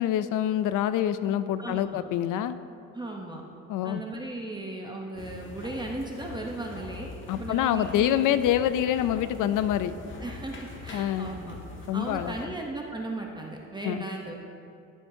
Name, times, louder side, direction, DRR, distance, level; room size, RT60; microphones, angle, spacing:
voice 1, 0.0-2.6 3.7-4.0 7.3-9.9 10.9-11.3 11.9-12.3 13.8-14.0, left 11 dB, 75° left, 13 dB, 0.5 m, -26 dB
voice 2, 1.6-2.0 2.9-3.4 3.8-8.3 10.2-11.6 11.9-14.3, right 2 dB, 15° right, 0 dB, 0.8 m, -36 dB
sound 1, 5.1-12.5, left 2 dB, 40° left, 1.4 m, -43 dB
16.5 x 7.1 x 2.7 m, 2.6 s
cardioid pair, 100°, 31 cm